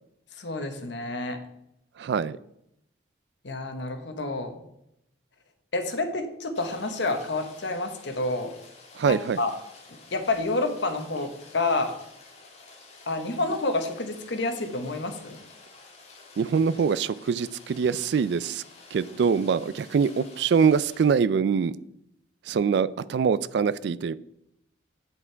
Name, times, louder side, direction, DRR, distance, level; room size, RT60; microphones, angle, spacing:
voice 1, 0.4-1.4 3.4-4.6 5.7-8.5 9.0-9.5 10.1-11.9 13.1-15.4, left 2 dB, 65° left, 6 dB, 1.1 m, -29 dB
voice 2, 2.0-2.4 9.0-9.4 16.4-18.6 18.9-21.7 22.5-24.1, right 6 dB, 60° right, 18 dB, 0.3 m, -24 dB
Rain, 6.5-21.1, left 3 dB, 35° left, 1.6 m, -51 dB
8.0 x 6.0 x 4.5 m, 0.79 s
head